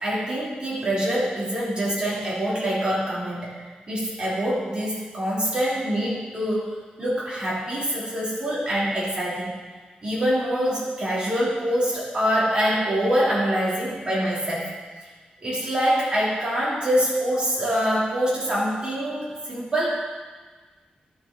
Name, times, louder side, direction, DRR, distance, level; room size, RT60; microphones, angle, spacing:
voice 1, 0.0-3.6 3.9-9.5 10.0-14.7 15.4-19.9, equal, 35° right, -7 dB, 3.1 m, -25 dB
12.0 x 6.7 x 3.9 m, 1.4 s
wide cardioid pair, 130°, 3 cm